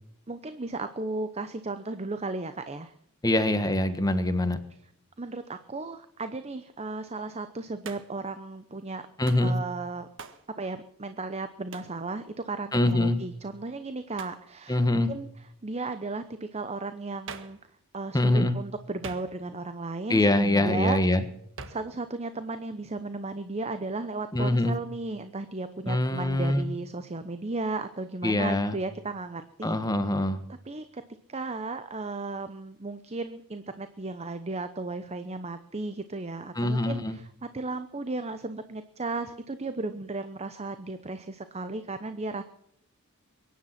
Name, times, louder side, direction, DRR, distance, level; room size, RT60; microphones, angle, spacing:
voice 1, 0.3-2.9 5.2-9.1 9.4-10.1 10.6-17.6 17.9-21.0 21.7-29.7 30.5-31.0 31.3-42.4, right 3 dB, 30° right, 10 dB, 0.8 m, -35 dB
voice 2, 3.2-4.6 9.2-9.6 12.7-13.2 14.7-15.1 18.1-18.5 20.1-21.2 24.3-24.7 25.9-26.7 28.2-28.8 29.6-30.4 36.6-37.2, left 1 dB, 15° left, 10 dB, 1.4 m, -24 dB
Hands, 7.8-8.3 9.3-9.5 10.2-10.5 11.7-12.0 14.1-14.5 17.3-17.6 19.0-19.6 21.6-21.9, right 5 dB, 60° right, 1.6 m, -43 dB
23.0 x 10.5 x 5.9 m, 0.72 s
head